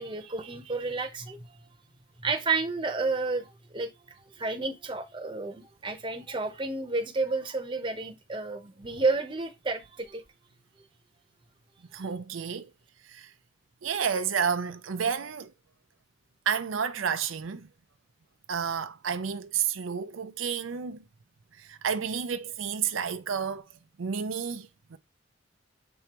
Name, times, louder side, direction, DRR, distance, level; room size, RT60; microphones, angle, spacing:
voice 1, 0.0-1.6 2.2-10.2, right 3 dB, 25° right, 0.9 m, -31 dB
voice 2, 11.9-12.7 13.0-13.3 13.8-15.5 16.5-17.7 18.5-21.0 21.5-23.7 24.0-25.0, right 7 dB, 90° right, 0.6 m, -31 dB
7.0 x 4.5 x 3.0 m
head